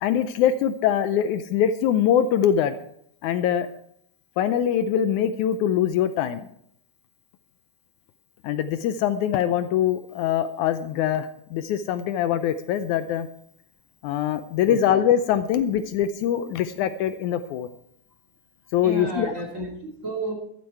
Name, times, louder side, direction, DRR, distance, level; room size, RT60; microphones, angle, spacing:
voice 1, 0.0-2.7 3.2-3.7 4.4-6.5 8.4-13.3 14.0-17.7 18.7-19.3, left 9 dB, 80° left, 11 dB, 2.0 m, -23 dB
voice 2, 18.8-20.3, right 2 dB, 25° right, 1 dB, 2.9 m, -32 dB
13.5 x 12.0 x 4.7 m, 0.69 s
omnidirectional pair, 3.6 m